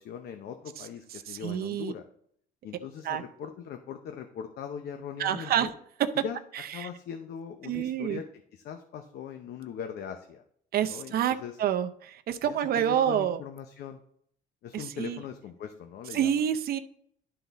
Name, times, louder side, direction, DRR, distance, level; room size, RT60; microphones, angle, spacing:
voice 1, 0.0-2.0 2.6-5.7 6.2-6.4 6.7-10.4 10.9-11.6 12.5-14.0 14.6-16.4, left 8 dB, 65° left, 6 dB, 0.8 m, -40 dB
voice 2, 1.3-1.9 3.0-3.2 5.2-5.7 6.8-6.9 7.6-8.2 10.7-13.4 14.7-15.2 16.1-16.8, right 9 dB, 60° right, 8 dB, 0.6 m, -28 dB
11.5 x 3.9 x 4.0 m, 0.64 s
cardioid pair, 120°, 18 cm